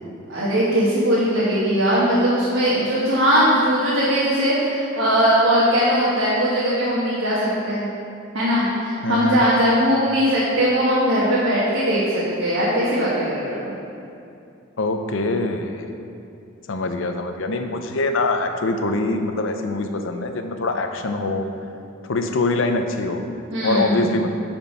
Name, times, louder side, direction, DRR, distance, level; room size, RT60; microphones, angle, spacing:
voice 1, 0.3-7.9 8.3-13.6 23.5-24.3, equal, 85° right, -9 dB, 1.5 m, -20 dB
voice 2, 9.0-9.4 14.8-15.9 16.7-21.5 22.0-23.2 23.6-24.3, left 2 dB, 75° left, 6 dB, 0.6 m, -24 dB
8.6 x 4.4 x 5.3 m, 2.6 s
head